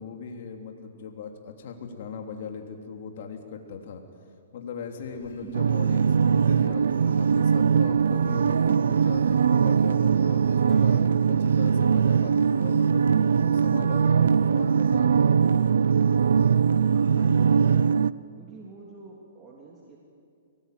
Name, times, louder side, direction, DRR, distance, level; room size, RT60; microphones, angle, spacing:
voice 1, 0.0-4.0 4.5-9.2 9.5-15.4, left 6 dB, 60° left, 4 dB, 3.2 m, -39 dB
sound 1, 4.9-11.1, left 4 dB, 80° left, 5.5 m, -51 dB
voice 2, 5.4-5.9 16.8-18.0 18.4-20.0, right 3 dB, 20° right, -3 dB, 3.2 m, -45 dB
sound 2, 5.5-18.1, right 6 dB, 85° right, 0.5 m, -21 dB
Acoustic guitar / Strum, 10.7-14.0, right 2 dB, 15° left, 3.7 m, -47 dB
23.5 x 19.5 x 9.4 m, 2.2 s
hypercardioid pair, 150°, 0 cm